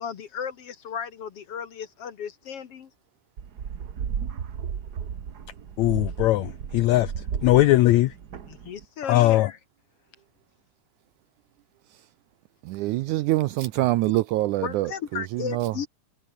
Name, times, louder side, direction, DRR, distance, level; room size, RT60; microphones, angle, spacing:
voice 1, 0.0-2.9 8.5-9.6 14.6-15.9, left 7 dB, 55° left, 1.9 m, -35 dB
sound 1, 3.4-8.8, right 7 dB, 65° right, 0.9 m, -34 dB
voice 2, 5.8-7.1 7.4-8.1 9.1-9.5, left 16 dB, 85° left, 1.6 m, -19 dB
voice 3, 12.6-15.7, right 17 dB, 85° right, 1.8 m, -25 dB
omnidirectional pair, 4.0 m